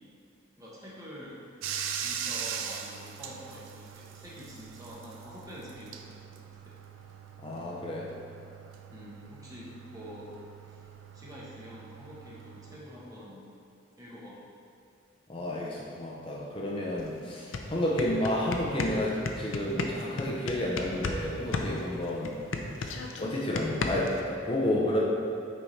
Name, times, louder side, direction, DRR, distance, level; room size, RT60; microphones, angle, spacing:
voice 1, 0.6-1.4 1.9-6.8 8.9-10.3 10.6-10.8 11.1-13.5 14.0-14.4, equal, 20° right, -6 dB, 1.1 m, -46 dB
Bathtub (filling or washing), 1.6-12.8, right 7 dB, 85° right, 0.4 m, -41 dB
voice 2, 7.4-8.1 15.3-22.4 22.8-25.0, left 1 dB, 25° left, -4 dB, 0.6 m, -31 dB
sound 1, 17.0-17.1 17.4-21.2 21.5-24.2, left 3 dB, 80° left, 0.5 m, -33 dB
8.8 x 4.1 x 3.2 m, 2.6 s
head